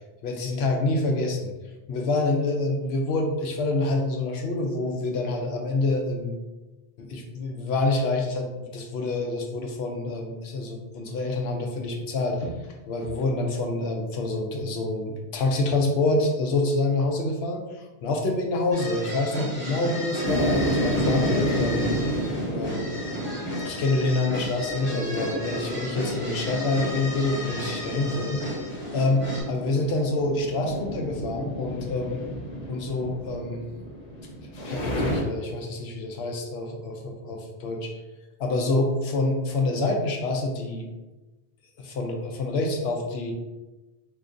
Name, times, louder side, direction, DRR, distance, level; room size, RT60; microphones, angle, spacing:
voice 1, 0.2-1.5 1.9-6.3 7.0-17.6 18.0-21.9 22.6-22.9 23.6-28.4 28.9-32.2 32.7-33.6 34.6-37.9 38.4-40.9 41.8-43.3, left 2 dB, 75° left, 2 dB, 0.8 m, -27 dB
sound 1, 18.7-29.4, left 1 dB, 30° left, 1.0 m, -34 dB
sound 2, 20.2-35.2, equal, 45° left, 0.7 m, -31 dB
3.5 x 2.9 x 2.5 m, 1.1 s
omnidirectional pair, 1.1 m